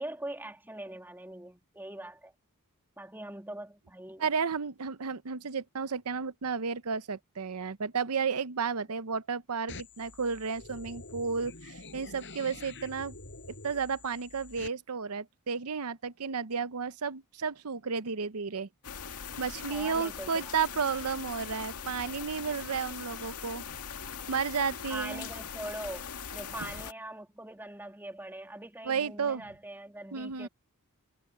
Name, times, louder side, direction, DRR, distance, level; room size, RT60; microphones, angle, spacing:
voice 1, 0.0-2.3 3.0-4.3 19.7-20.6 24.9-30.5, right 1 dB, 10° right, 2.7 m, -42 dB
voice 2, 4.2-13.2 13.6-18.7 19.4-23.6 24.3-25.3 28.8-29.4 30.1-30.5, right 5 dB, 80° right, 0.8 m, -32 dB
sound 1, 9.7-14.7, left 3 dB, 55° left, 6.1 m, -47 dB
sound 2, 18.8-26.9, left 7 dB, 85° left, 2.0 m, -41 dB
head